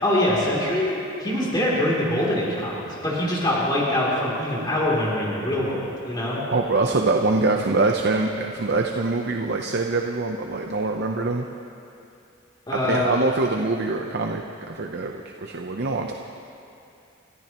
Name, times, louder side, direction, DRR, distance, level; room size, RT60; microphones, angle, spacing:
voice 1, 0.0-6.4 12.7-13.1, left 1 dB, 20° left, -6 dB, 3.0 m, -24 dB
voice 2, 6.5-11.5 12.8-15.1 15.4-16.1, right 3 dB, 55° right, 3 dB, 0.7 m, -24 dB
30.0 x 14.0 x 3.0 m, 2.6 s
head